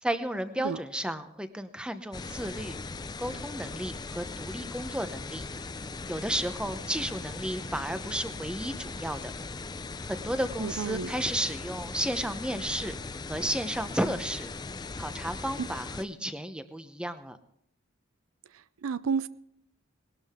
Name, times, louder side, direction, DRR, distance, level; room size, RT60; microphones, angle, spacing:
voice 1, 0.0-2.8 3.2-5.4 6.1-9.3 10.1-13.0 13.3-14.5 15.0-17.4, right 1 dB, 5° right, 0.8 m, -33 dB
sound 1, 2.1-16.0, left 3 dB, 20° left, 0.4 m, -39 dB
voice 2, 10.6-11.1 15.6-15.7 18.8-19.3, right 6 dB, 80° right, 0.5 m, -30 dB
19.5 x 12.0 x 3.6 m
head